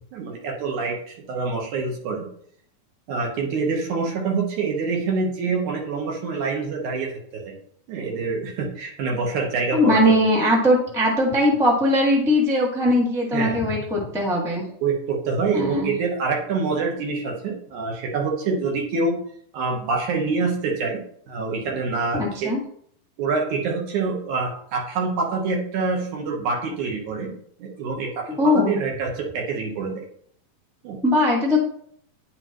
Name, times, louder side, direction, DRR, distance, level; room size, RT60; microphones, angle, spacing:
voice 1, 0.1-2.3 3.1-7.6 7.9-10.2 13.3-13.6 14.8-19.2 19.5-21.0 21.3-22.5 23.2-27.3 27.6-30.0 30.8-31.0, right 4 dB, 65° right, 0 dB, 2.5 m, -26 dB
voice 2, 9.7-14.6 15.5-15.9 22.1-22.6 28.4-28.8 31.0-31.6, left 1 dB, ahead, -3 dB, 1.0 m, -20 dB
10.5 x 5.6 x 3.0 m, 0.63 s
omnidirectional pair, 4.0 m